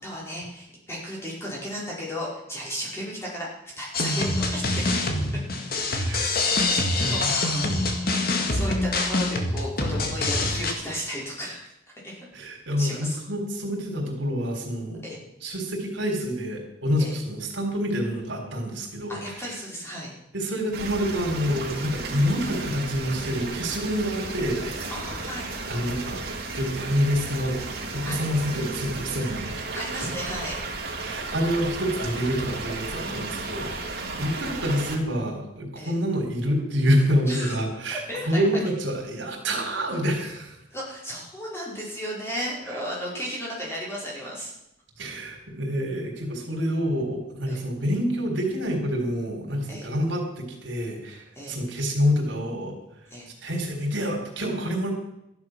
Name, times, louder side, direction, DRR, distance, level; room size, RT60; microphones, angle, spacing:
voice 1, 0.0-3.5 3.8-5.4 5.9-7.6 8.3-11.6 12.0-12.2 12.8-13.2 15.0-15.2 17.0-17.2 19.1-20.1 24.9-25.5 28.0-28.2 29.7-30.6 33.0-33.4 34.0-34.3 35.7-35.9 37.3-37.5 38.1-38.4 40.7-44.5 47.5-47.6 49.7-49.9 51.3-51.6 53.1-53.3, equal, 15° left, -5 dB, 5.0 m, -35 dB
sound 1, 3.9-10.7, left 2 dB, 50° left, 1.9 m, -25 dB
voice 2, 6.1-6.4 7.0-7.3 12.3-15.0 15.4-19.5 20.3-24.8 25.7-26.2 26.5-27.6 27.9-30.1 31.0-38.0 38.3-40.5 42.7-42.8 45.0-52.7 53.4-54.9, equal, 80° right, 1 dB, 3.9 m, -27 dB
sound 2, 20.7-35.0, right 3 dB, 55° right, 3.5 m, -34 dB
13.5 x 11.0 x 6.3 m, 0.82 s
head